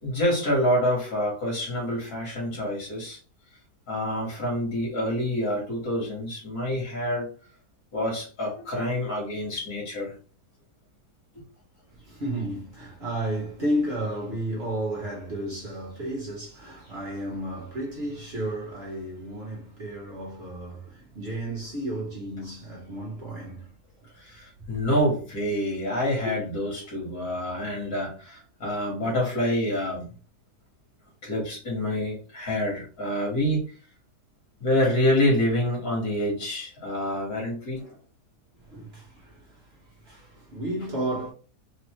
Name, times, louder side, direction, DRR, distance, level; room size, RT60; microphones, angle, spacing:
voice 1, 0.0-3.2 3.9-7.3 7.9-10.1 24.2-30.1 31.2-33.6 34.6-37.9, left 1 dB, 65° left, 2.5 m, -27 dB
voice 2, 11.9-23.7 24.0-24.1 38.7-39.4 40.0-41.3, right 1 dB, 40° right, 1.5 m, -32 dB
4.5 x 2.8 x 3.1 m
omnidirectional pair, 1.7 m